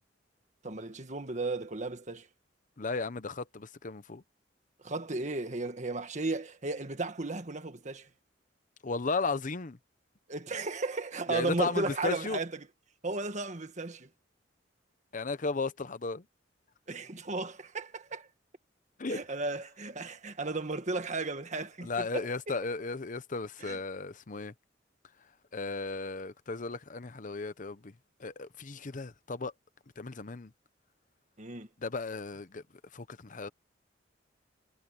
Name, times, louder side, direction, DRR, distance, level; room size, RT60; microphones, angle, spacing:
voice 1, 0.6-2.3 4.8-8.1 10.3-12.7 13.0-14.1 16.9-18.3 19.1-22.3 23.6-23.8 31.4-31.7, right 3 dB, 40° right, 1.7 m, -35 dB
voice 2, 2.8-4.2 8.8-9.8 11.3-12.4 15.1-16.2 19.0-19.2 21.8-24.5 25.5-27.9 28.2-29.5 30.0-30.5 31.8-32.6 32.9-33.5, left 3 dB, 45° left, 0.8 m, -35 dB
head